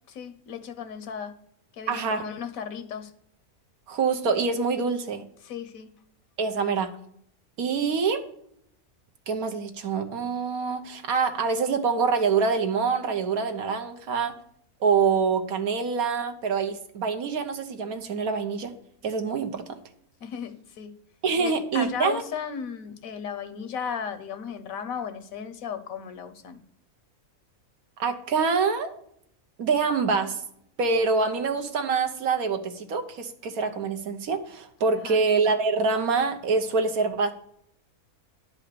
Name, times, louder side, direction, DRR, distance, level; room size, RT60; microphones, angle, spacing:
voice 1, 0.1-1.3 1.7-3.1 5.4-5.9 20.2-20.9 21.4-26.6 35.0-35.2, left 7 dB, 75° left, 10 dB, 1.3 m, -35 dB
voice 2, 1.9-2.2 3.9-5.2 6.4-6.9 7.6-8.2 9.3-14.4 14.8-18.7 19.0-19.8 21.2-22.2 28.0-28.9 29.6-30.4 30.8-37.3, right 5 dB, 80° right, 6 dB, 1.5 m, -25 dB
11.0 x 5.0 x 6.6 m, 0.72 s
omnidirectional pair, 1.5 m